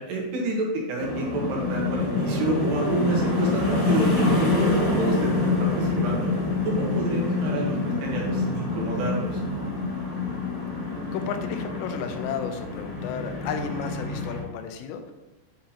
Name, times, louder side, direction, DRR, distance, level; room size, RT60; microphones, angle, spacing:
voice 1, 0.0-6.3 6.6-9.4, right 2 dB, 75° right, -2 dB, 3.3 m, -29 dB
sound 1, 1.0-14.4, left 3 dB, 40° left, 1.7 m, -26 dB
voice 2, 11.1-15.1, left 7 dB, 90° left, 7 dB, 2.8 m, -33 dB
9.3 x 4.2 x 2.9 m, 1.0 s
omnidirectional pair, 5.0 m